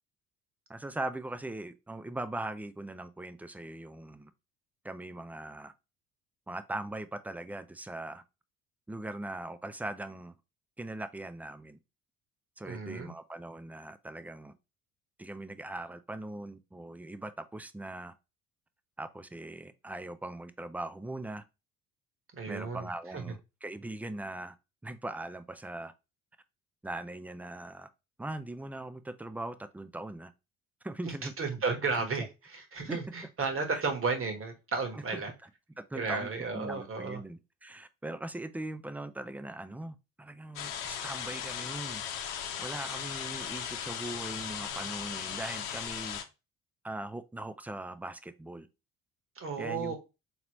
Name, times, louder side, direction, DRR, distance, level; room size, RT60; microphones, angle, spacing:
voice 1, 0.7-4.3 4.8-5.7 6.5-8.2 8.9-10.3 10.8-11.8 12.6-14.5 15.2-18.1 19.0-21.4 22.5-24.6 24.8-25.9 26.8-27.9 28.2-30.3 30.8-31.3 32.9-33.0 33.7-33.8 34.9-35.2 35.8-42.0 42.6-46.2 46.8-48.7 49.6-49.9, right 2 dB, 5° right, 0.3 m, -40 dB
voice 2, 12.6-13.1 22.3-23.3 31.4-35.3 35.9-37.2 49.3-49.9, right 4 dB, 35° right, 1.4 m, -33 dB
sound 1, 40.6-46.2, left 8 dB, 70° left, 0.8 m, -37 dB
3.8 x 3.1 x 3.0 m
hypercardioid pair, 60°, 38 cm